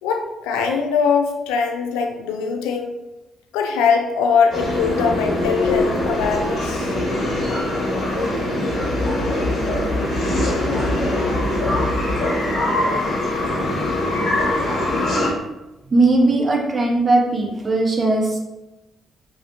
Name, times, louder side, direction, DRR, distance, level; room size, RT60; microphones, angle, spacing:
voice 1, 0.0-3.0 3.5-6.9 10.8-10.9, left 6 dB, 90° left, 4 dB, 0.3 m, -21 dB
sound 1, 4.5-15.3, left 1 dB, 60° left, 1.3 m, -22 dB
sound 2, 8.7-12.2, left 2 dB, 15° left, 1.0 m, -28 dB
voice 2, 15.9-18.4, right 2 dB, 40° right, 0 dB, 0.6 m, -18 dB
3.1 x 2.6 x 2.8 m, 0.99 s
supercardioid pair, 55°, 0 cm